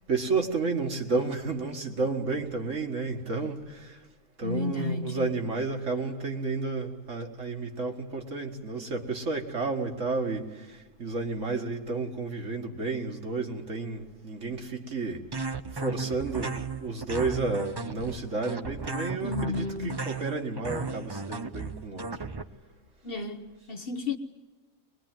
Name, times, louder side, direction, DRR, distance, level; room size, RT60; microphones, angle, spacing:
voice 1, 0.1-4.0 4.4-15.2 15.7-22.1, right 3 dB, 60° right, 2.2 m, -31 dB
voice 2, 4.4-5.4 19.2-20.0 23.0-24.2, left 4 dB, 45° left, 1.2 m, -33 dB
sound 1, 15.3-22.4, right 4 dB, 25° right, 0.5 m, -35 dB
22.5 x 22.0 x 9.1 m
omnidirectional pair, 1.5 m